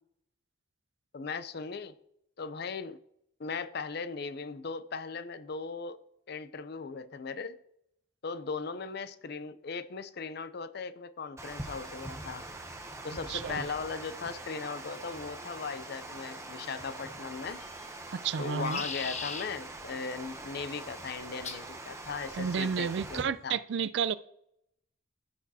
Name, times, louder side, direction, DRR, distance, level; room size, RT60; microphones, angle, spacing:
voice 1, 1.1-1.9 2.4-3.0 3.4-6.0 6.3-7.6 8.2-12.5 13.0-17.6 18.4-23.6, left 5 dB, 55° left, 13 dB, 0.5 m, -38 dB
Water, 11.4-23.2, right 2 dB, 15° right, 0.7 m, -43 dB
voice 2, 13.3-13.6 18.1-18.8 22.3-24.2, right 6 dB, 60° right, 16 dB, 0.4 m, -31 dB
sound 1, 17.4-17.9 18.4-19.5 21.4-21.7 22.6-23.0, left 5 dB, 35° left, 1.0 m, -39 dB
15.0 x 6.1 x 2.8 m, 0.77 s
head